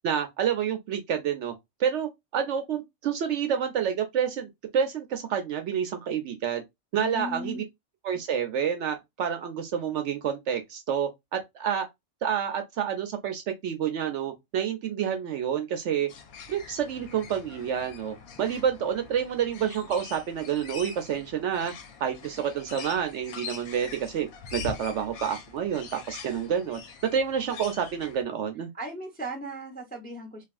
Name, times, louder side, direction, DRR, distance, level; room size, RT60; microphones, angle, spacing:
voice 1, 0.0-1.5 1.8-6.6 6.9-7.6 8.0-11.9 12.2-16.1 16.5-21.7 22.0-26.8 27.1-28.7, right 8 dB, 65° right, 0.8 m, -29 dB
voice 2, 7.0-7.6 28.7-30.4, equal, 10° left, 0.4 m, -37 dB
sound 1, 16.1-28.2, left 6 dB, 85° left, 1.2 m, -43 dB
3.2 x 2.3 x 2.4 m
omnidirectional pair, 1.5 m